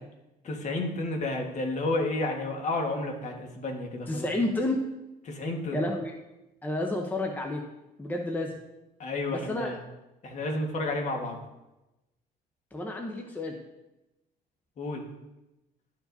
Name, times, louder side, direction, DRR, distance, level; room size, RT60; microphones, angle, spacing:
voice 1, 0.4-4.3 5.3-5.8 9.0-9.8 10.2-11.4 14.8-15.0, left 2 dB, 45° left, 2 dB, 1.5 m, -31 dB
voice 2, 4.1-4.8 5.7-6.1 6.6-7.6 8.0-8.5 9.3-9.7 12.7-13.6, left 1 dB, 10° left, 1 dB, 0.8 m, -30 dB
12.0 x 4.8 x 2.7 m, 0.96 s
cardioid pair, 110°, 17 cm